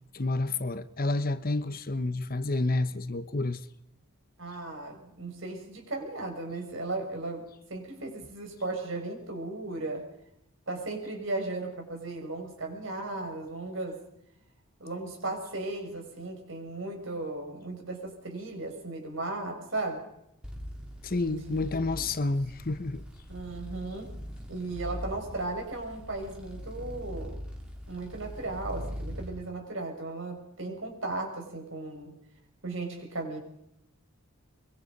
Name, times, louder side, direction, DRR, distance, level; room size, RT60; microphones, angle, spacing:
voice 1, 0.1-3.6 21.0-23.0, left 2 dB, 40° left, 1.0 m, -29 dB
voice 2, 4.4-7.4 7.7-10.0 10.7-14.0 14.8-20.0 21.2-22.0 23.3-24.1 24.5-27.4 27.9-32.2 32.6-33.4, right 2 dB, 60° right, 6.1 m, -36 dB
sound 1, 20.4-29.3, equal, 5° right, 4.1 m, -41 dB
24.5 x 23.0 x 5.4 m
head